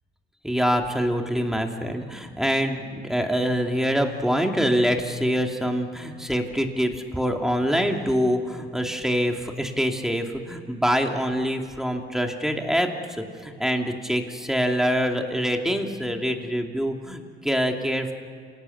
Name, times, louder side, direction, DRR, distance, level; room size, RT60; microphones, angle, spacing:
voice 1, 0.4-12.9 13.4-18.1, equal, ahead, 3 dB, 2.6 m, -25 dB
27.0 x 18.5 x 8.0 m, 2.2 s
cardioid pair, 90°, 20 cm